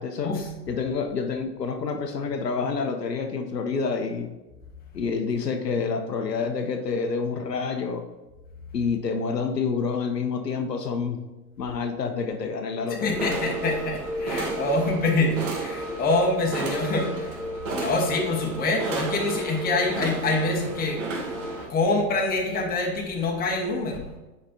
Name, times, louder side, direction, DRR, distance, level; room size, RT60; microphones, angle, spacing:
voice 1, 0.7-4.3 4.9-8.0 8.7-11.2 11.6-13.3, left 5 dB, 80° left, 5 dB, 0.8 m, -28 dB
voice 2, 13.0-17.4 17.7-21.1 21.7-24.1, left 2 dB, 20° left, 0 dB, 1.4 m, -25 dB
sound 1, 13.0-21.7, right 1 dB, 50° right, 1.3 m, -32 dB
9.8 x 4.3 x 2.7 m, 1.1 s
figure-of-eight pair, 95°, 48 cm